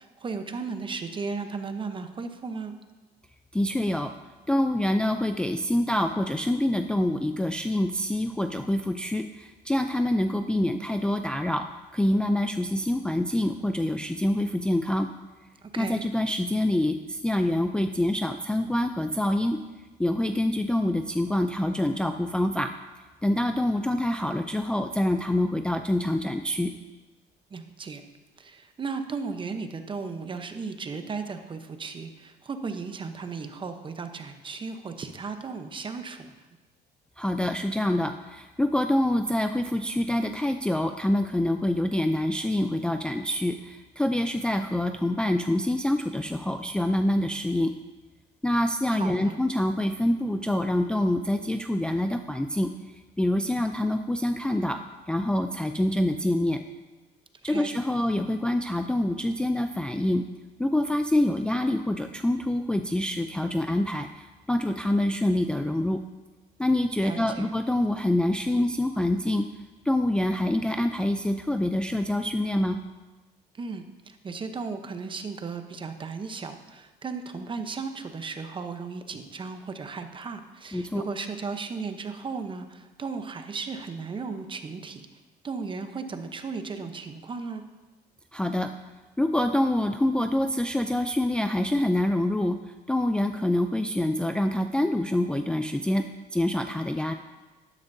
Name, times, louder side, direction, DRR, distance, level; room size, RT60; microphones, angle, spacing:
voice 1, 0.0-2.7 15.6-16.0 27.5-28.0 28.4-36.3 48.9-49.3 57.5-57.7 67.0-67.5 73.5-85.1 85.4-87.6, right 4 dB, 30° right, 7 dB, 0.9 m, -35 dB
voice 2, 3.5-4.1 4.5-11.6 11.9-15.1 15.8-19.6 20.0-22.7 23.2-26.7 37.2-47.7 48.4-52.7 53.2-54.8 55.1-56.6 57.4-60.3 60.6-66.0 66.6-69.5 69.9-72.8 80.7-81.0 88.3-88.7 89.2-96.0 96.3-97.1, left 1 dB, 5° left, 6 dB, 0.4 m, -26 dB
12.0 x 10.5 x 2.7 m, 1.2 s
cardioid pair, 110°, 17 cm